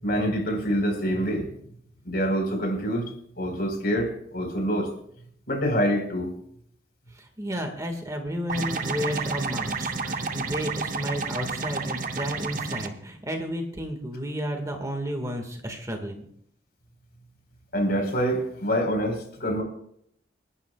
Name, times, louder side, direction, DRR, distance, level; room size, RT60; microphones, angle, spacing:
voice 1, 0.0-1.5 2.0-4.9 5.5-6.3 17.7-19.6, equal, 60° left, 3 dB, 4.6 m, -26 dB
voice 2, 7.1-16.3, equal, 20° right, 4 dB, 1.8 m, -32 dB
sound 1, 8.5-12.9, right 4 dB, 50° right, 1.1 m, -30 dB
29.5 x 11.0 x 2.4 m, 0.69 s
head